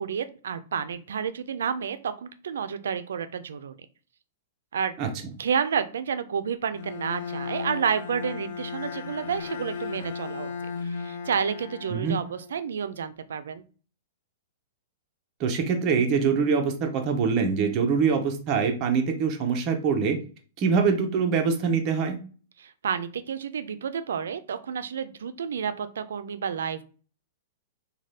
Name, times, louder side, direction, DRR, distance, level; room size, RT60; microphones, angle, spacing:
voice 1, 0.0-3.8 4.7-5.0 5.4-10.5 10.8-13.6 22.6-26.8, right 7 dB, 90° right, 12 dB, 0.3 m, -30 dB
Bowed string instrument, 6.7-12.7, left 5 dB, 60° left, 0.4 m, -36 dB
voice 2, 15.4-20.2 20.6-22.2, right 5 dB, 30° right, 4 dB, 0.6 m, -24 dB
2.7 x 2.2 x 3.2 m, 0.38 s
hypercardioid pair, 155°, 0 cm